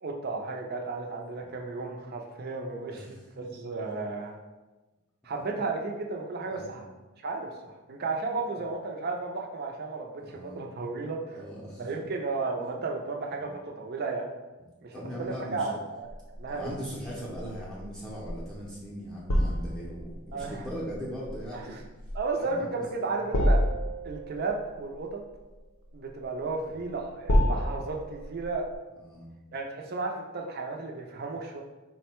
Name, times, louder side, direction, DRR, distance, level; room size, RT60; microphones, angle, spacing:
voice 1, 0.0-4.4 5.2-6.9 7.2-7.5 7.9-11.4 11.8-14.3 14.8-16.7 20.3-20.7 21.5-21.8 22.1-23.6 24.0-25.2 25.9-28.7 29.5-31.6, right 3 dB, 45° right, 1 dB, 0.5 m, -34 dB
voice 2, 2.9-3.5 5.3-5.4 6.5-6.8 10.3-10.6 11.3-11.9 13.3-13.4 14.9-15.8 16.5-21.8 22.4-22.7 26.6-26.8 29.1-29.3, equal, 5° left, -6 dB, 0.6 m, -40 dB
sound 1, 16.0-28.7, equal, 75° left, 0.6 m, -30 dB
3.9 x 2.2 x 4.3 m, 1.2 s
head